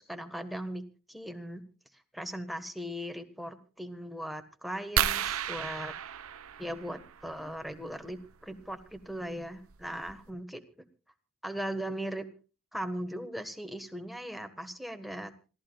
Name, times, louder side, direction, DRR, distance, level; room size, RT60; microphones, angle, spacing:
voice 1, 0.0-1.6 2.1-5.9 6.6-10.6 11.4-12.2 12.7-15.3, equal, ahead, 7 dB, 1.4 m, -38 dB
sound 1, 5.0-7.3 8.9-9.1 9.7-9.8 10.1-10.3, right 8 dB, 70° right, 0.9 m, -32 dB
26.5 x 16.0 x 2.3 m, 0.35 s
head